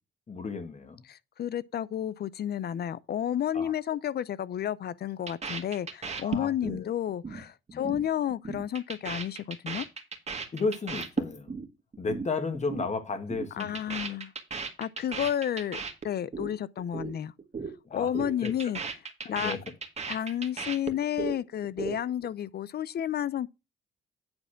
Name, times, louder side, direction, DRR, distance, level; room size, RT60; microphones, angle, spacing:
voice 1, 0.3-1.0 3.5-3.7 6.2-6.9 7.7-8.0 10.5-11.5 12.0-13.7 17.9-18.1 18.4-18.5 19.2-19.6, left 4 dB, 35° left, 1.8 m, -33 dB
voice 2, 1.1-9.9 13.5-14.3 14.8-17.3 17.9-18.8 19.2-19.6 20.1-23.5, left 10 dB, 55° left, 0.6 m, -31 dB
sound 1, 5.3-6.8 7.1-7.4 7.7-8.0 8.3-11.7 11.9-12.3 12.5-12.9 13.1-16.5 16.8-17.1 17.4-17.7 18.0-21.4 21.6-22.3, right 5 dB, 35° right, 1.7 m, -35 dB
9.6 x 4.3 x 5.7 m
cardioid pair, 90°, 20 cm